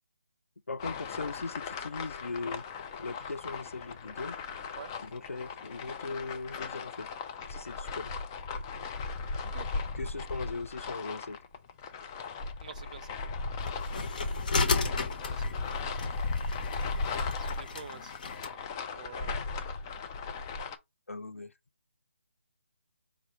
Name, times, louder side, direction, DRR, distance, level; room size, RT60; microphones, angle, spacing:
voice 1, 0.7-2.6 3.0-4.4 5.0-7.1 7.5-8.1 10.0-11.4 14.9-15.1 21.1-21.5, left 3 dB, 85° left, 0.6 m, -39 dB
sound 1, 0.8-20.8, left 4 dB, 15° left, 0.4 m, -37 dB
voice 2, 9.4-9.9 12.6-13.1 15.3-15.7 17.4-18.2 18.5-18.7 19.0-19.7, right 6 dB, 35° right, 0.5 m, -48 dB
sound 2, 13.6-18.5, left 4 dB, 40° left, 0.9 m, -34 dB
5.1 x 2.4 x 4.1 m
figure-of-eight pair, 160°, 7 cm